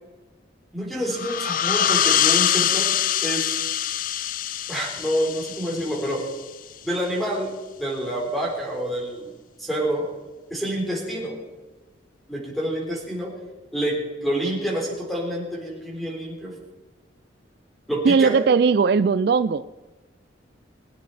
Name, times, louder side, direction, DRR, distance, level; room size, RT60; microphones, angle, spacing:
voice 1, 0.7-2.9 3.2-3.5 4.7-6.2 6.8-7.5 7.8-9.3 9.6-10.1 10.5-11.4 12.3-13.3 13.7-14.0 14.2-16.5 17.9-18.4, equal, ahead, -2 dB, 3.8 m, -27 dB
sound 1, 1.1-6.5, left 10 dB, 45° left, 0.4 m, -24 dB
voice 2, 18.0-19.7, right 5 dB, 55° right, 13 dB, 0.4 m, -19 dB
21.5 x 9.5 x 4.2 m, 1.2 s
head